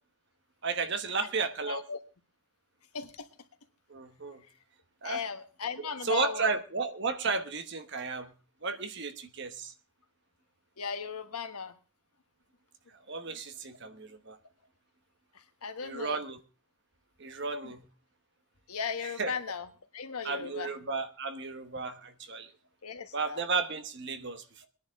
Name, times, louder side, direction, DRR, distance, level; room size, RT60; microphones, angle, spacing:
voice 1, 0.6-1.8 3.9-4.4 5.0-5.2 5.8-8.3 8.6-9.7 13.1-14.4 15.8-16.4 17.2-17.8 19.2-19.3 20.2-22.5 23.1-24.7, right 4 dB, 50° right, 9 dB, 1.2 m, -33 dB
voice 2, 1.6-2.0 2.9-3.3 5.0-6.5 10.8-11.8 15.3-16.2 17.6-17.7 18.7-19.7 19.9-20.7 22.8-23.4, left 5 dB, 90° left, 8 dB, 1.4 m, -37 dB
21.5 x 10.5 x 3.6 m, 0.34 s
head